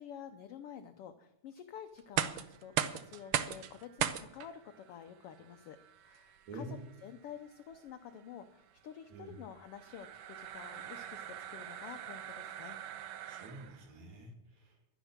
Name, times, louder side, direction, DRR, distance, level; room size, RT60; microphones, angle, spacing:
voice 1, 0.0-12.8, left 9 dB, 75° left, 8 dB, 1.3 m, -50 dB
sound 1, 2.0-13.9, right 10 dB, 90° right, 1.2 m, -40 dB
voice 2, 6.5-6.9 9.1-9.4 13.3-14.8, right 1 dB, 65° right, 3 dB, 4.0 m, -47 dB
11.5 x 11.0 x 7.3 m, 0.84 s
omnidirectional pair, 3.5 m